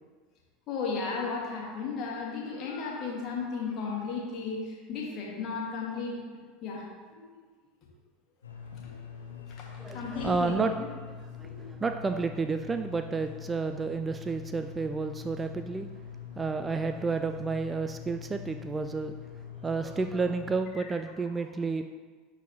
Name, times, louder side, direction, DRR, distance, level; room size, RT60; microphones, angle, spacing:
voice 1, 0.7-6.2 6.6-6.8 7.1-7.2 8.8-9.0 9.6-9.7 9.9-10.7 11.4-11.7 20.8-20.9, left 4 dB, 45° left, -2 dB, 1.9 m, -34 dB
sound 1, 8.4-20.6, left 7 dB, 80° left, 0.7 m, -44 dB
voice 2, 9.8-10.7 11.4-11.5 11.8-15.9 16.4-19.1 19.6-21.8, right 4 dB, 20° right, 7 dB, 0.3 m, -31 dB
11.0 x 4.1 x 3.1 m, 1.5 s
figure-of-eight pair, 75°, 0 cm